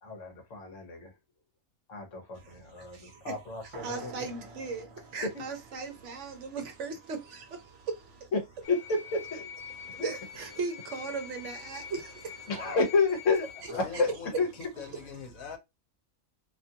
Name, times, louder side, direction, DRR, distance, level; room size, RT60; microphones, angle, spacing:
voice 1, 0.0-1.1 1.9-4.3 5.2-5.4 8.3-9.5 10.0-10.1 12.5-14.1 14.4-14.5, left 4 dB, 65° left, 1.2 m, -30 dB
voice 2, 2.3-8.3 9.7-12.5, right 4 dB, 65° right, 1.0 m, -39 dB
sound 1, 3.7-7.6, right 2 dB, 35° right, 0.5 m, -50 dB
sound 2, 8.6-13.7, left 7 dB, 50° left, 0.5 m, -45 dB
voice 3, 13.7-15.6, left 6 dB, 90° left, 1.2 m, -42 dB
2.8 x 2.4 x 2.7 m
omnidirectional pair, 1.4 m